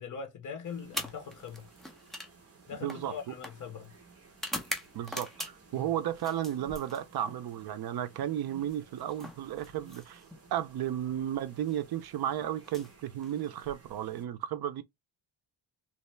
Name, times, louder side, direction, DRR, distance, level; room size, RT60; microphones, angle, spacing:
voice 1, 0.0-1.7 2.7-3.9 5.7-5.9, left 6 dB, 45° left, 1.2 m, -41 dB
sound 1, 0.6-14.3, right 3 dB, 30° right, 1.0 m, -56 dB
sound 2, 0.8-5.8 6.2-7.4 8.6-10.4 11.5-11.8 12.6-13.7, left 1 dB, ahead, 0.5 m, -43 dB
voice 2, 2.8-3.3 4.9-10.2 10.5-14.8, right 11 dB, 55° right, 0.6 m, -34 dB
3.1 x 2.8 x 3.2 m
cardioid pair, 165°, 45 cm